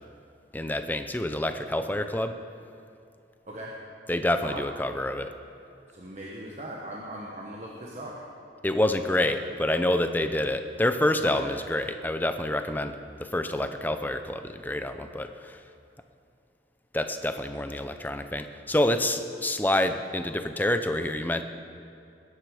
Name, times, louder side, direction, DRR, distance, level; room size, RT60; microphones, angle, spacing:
voice 1, 0.5-2.3 4.1-5.3 8.6-15.6 16.9-21.4, left 1 dB, 10° left, 8 dB, 0.6 m, -27 dB
voice 2, 5.9-8.2 8.9-9.1 11.2-11.5, right 1 dB, 40° right, -3 dB, 1.4 m, -39 dB
20.5 x 9.9 x 5.0 m, 2.5 s
head